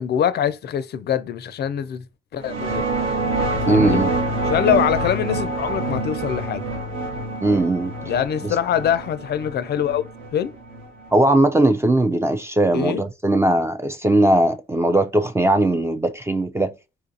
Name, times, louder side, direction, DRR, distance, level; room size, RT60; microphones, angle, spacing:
voice 1, 0.0-2.0 2.3-2.9 3.6-4.0 4.4-6.6 8.0-10.1 10.3-10.5 12.7-13.0, left 9 dB, 55° left, 0.4 m, -23 dB
sound 1, 2.4-11.1, right 2 dB, 80° right, 1.3 m, -26 dB
voice 2, 3.7-4.1 7.4-7.9 8.4-8.5 11.1-16.7, right 1 dB, 15° right, 0.3 m, -19 dB
4.3 x 2.4 x 2.7 m
cardioid pair, 90°, 20 cm